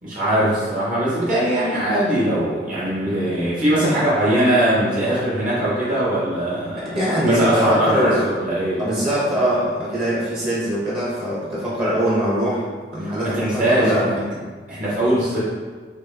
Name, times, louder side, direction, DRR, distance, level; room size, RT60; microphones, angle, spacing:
voice 1, 0.0-7.0 7.2-8.8 13.0-14.1 14.7-15.4, right 1 dB, 50° right, -8 dB, 1.5 m, -21 dB
voice 2, 6.9-8.2 8.8-14.4, equal, 30° right, -7 dB, 1.1 m, -22 dB
6.2 x 2.2 x 3.8 m, 1.5 s
head